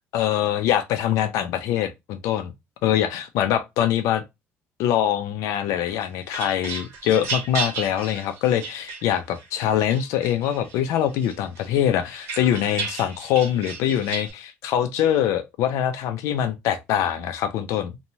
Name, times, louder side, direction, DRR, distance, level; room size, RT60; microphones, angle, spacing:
voice 1, 0.1-2.5 2.8-4.2 4.8-18.0, left 10 dB, 80° left, 0.5 m, -23 dB
sound 1, 5.9-9.4 9.9-10.8 11.2-14.3, right 4 dB, 65° right, 1.1 m, -33 dB
3.0 x 2.2 x 2.6 m
cardioid pair, 135°, 5 cm